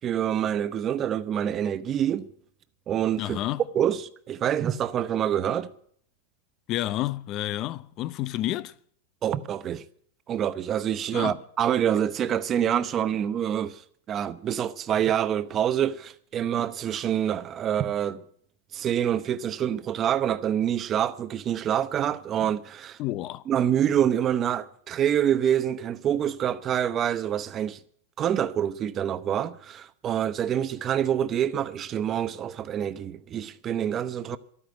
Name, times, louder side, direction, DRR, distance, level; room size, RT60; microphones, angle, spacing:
voice 1, 0.0-2.3 2.9-3.4 3.7-5.7 9.2-9.8 10.3-13.8 14.1-18.2 18.7-23.0 23.5-27.8 28.2-34.4, right 10 dB, 30° right, 0.8 m, -26 dB
voice 2, 3.2-3.6 6.7-8.7 11.1-11.4 23.0-23.4, left 15 dB, 40° left, 0.7 m, -30 dB
12.5 x 9.3 x 9.4 m
supercardioid pair, 135°, 0 cm